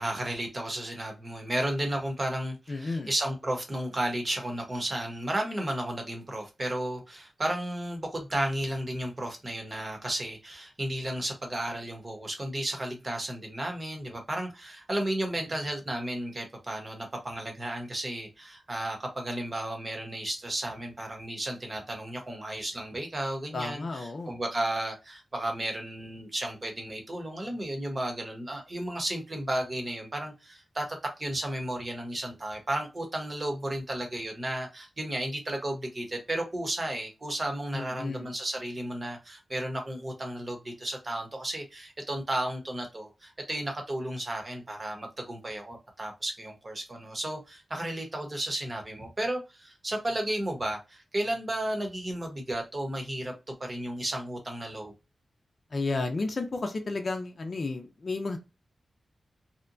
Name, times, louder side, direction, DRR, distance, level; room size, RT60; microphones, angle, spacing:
voice 1, 0.0-54.9, right 1 dB, 35° right, 0.9 m, -33 dB
voice 2, 2.7-3.1 23.5-24.3 37.7-38.3 55.7-58.4, left 3 dB, 50° left, 0.5 m, -32 dB
2.8 x 2.2 x 2.5 m
wide cardioid pair, 80°, 0 cm